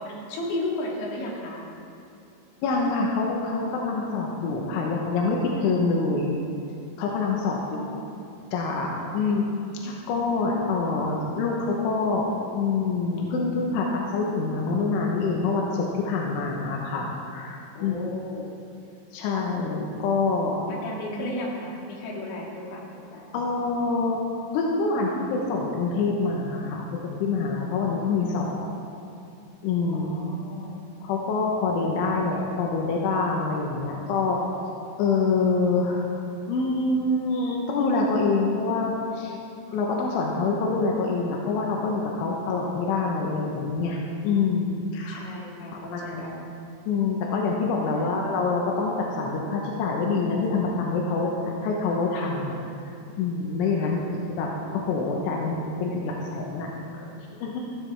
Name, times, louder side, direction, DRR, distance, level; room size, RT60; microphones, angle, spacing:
voice 1, 0.0-1.6 7.4-8.1 9.2-9.5 17.8-18.5 20.7-23.4 29.9-30.8 45.1-46.5 47.9-48.2 53.8-54.1 56.9-57.1, left 1 dB, 70° left, -2 dB, 4.1 m, -35 dB
voice 2, 2.6-6.4 7.0-7.8 8.5-9.5 9.8-18.0 19.1-20.8 23.3-24.2 24.5-28.7 29.6-30.1 31.0-34.7 35.0-36.1 36.5-39.3 39.7-45.2 45.7-46.2 46.9-52.6 53.2-56.7 57.2-57.6, left 4 dB, 90° left, -1 dB, 3.5 m, -26 dB
15.0 x 14.0 x 3.5 m, 2.7 s
omnidirectional pair, 5.4 m